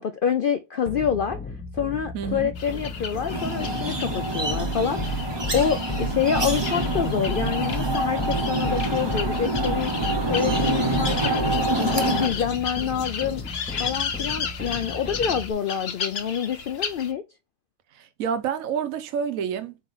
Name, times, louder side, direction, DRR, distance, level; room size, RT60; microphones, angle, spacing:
voice 1, 0.0-1.4 1.7-9.9 10.3-11.5 11.7-13.4 13.8-17.2, left 7 dB, 70° left, 0.5 m, -27 dB
sound 1, 0.9-15.5, equal, 15° left, 0.4 m, -33 dB
voice 2, 2.1-2.5 17.9-19.8, right 7 dB, 80° right, 1.1 m, -28 dB
sound 2, 2.6-17.1, left 6 dB, 55° left, 1.0 m, -34 dB
sound 3, 3.3-12.3, right 2 dB, 20° right, 0.9 m, -26 dB
4.7 x 3.8 x 5.4 m
omnidirectional pair, 1.4 m